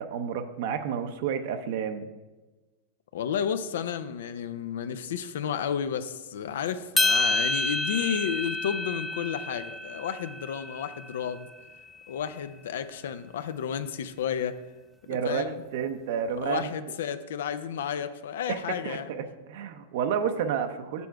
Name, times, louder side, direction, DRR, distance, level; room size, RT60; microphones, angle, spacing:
voice 1, 0.0-2.1 15.1-15.4 15.7-16.7 18.5-18.6 18.8-19.2 19.5-21.1, right 7 dB, 60° right, 8 dB, 0.6 m, -30 dB
voice 2, 3.1-11.5 12.1-14.6 15.1-15.6 16.4-19.2, left 8 dB, 80° left, 11 dB, 0.5 m, -32 dB
sound 1, 7.0-11.4, left 2 dB, 5° left, 0.4 m, -29 dB
6.9 x 6.2 x 4.6 m, 1.2 s
supercardioid pair, 155°, 0 cm